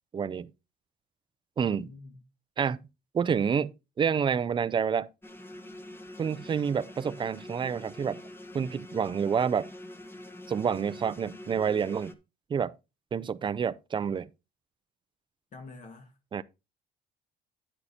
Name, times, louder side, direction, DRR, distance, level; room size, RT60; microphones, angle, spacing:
voice 1, 0.1-0.5 1.6-1.9 2.6-2.8 3.1-5.1 6.2-8.2 8.5-9.7 10.5-12.1 12.5-12.8 13.1-14.3 16.3-16.4, right 7 dB, 30° right, 0.5 m, -28 dB
voice 2, 1.6-2.2 15.5-16.2, left 3 dB, 45° left, 1.6 m, -47 dB
sound 1, 5.2-12.1, left 1 dB, 15° left, 1.2 m, -45 dB
10.0 x 8.8 x 2.8 m
cardioid pair, 110°, 17 cm